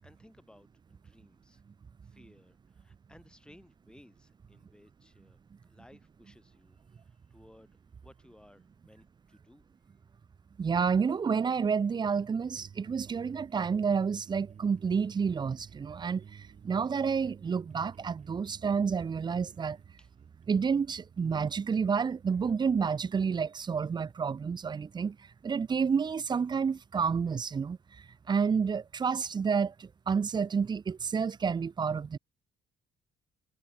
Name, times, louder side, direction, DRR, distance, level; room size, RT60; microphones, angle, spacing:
voice 1, 0.0-1.6 2.0-5.4 5.7-9.6 20.0-20.1, left 1 dB, 5° left, 5.0 m, -59 dB
voice 2, 10.6-16.2 16.6-19.8 20.5-25.2 25.4-27.8 28.3-32.2, right 6 dB, 25° right, 0.7 m, -29 dB
sound 1, 12.5-22.9, right 7 dB, 40° right, 3.6 m, -53 dB
cardioid pair, 110°, 17 cm